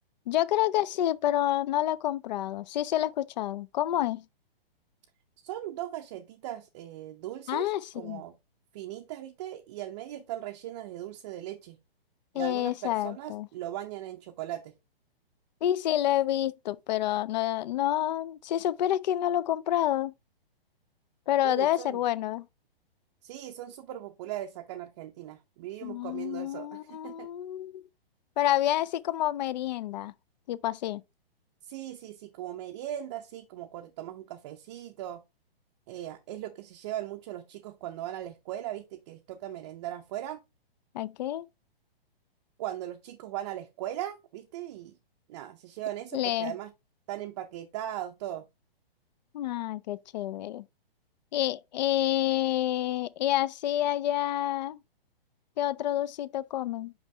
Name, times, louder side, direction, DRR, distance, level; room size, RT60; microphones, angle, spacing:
voice 1, 0.3-4.2 7.5-8.2 12.3-13.5 15.6-20.1 21.3-22.5 25.8-27.8 28.4-30.1 30.5-31.0 40.9-41.4 46.1-46.5 49.3-50.6 51.3-54.8 55.6-56.9, left 13 dB, 50° left, 0.4 m, -28 dB
voice 2, 5.4-8.3 8.7-11.8 12.3-14.7 21.4-22.0 23.2-27.3 31.6-35.2 35.9-40.4 42.6-45.0 45.3-46.7 47.1-48.5, right 12 dB, 30° right, 0.5 m, -39 dB
5.5 x 5.5 x 3.2 m
hypercardioid pair, 145°, 30 cm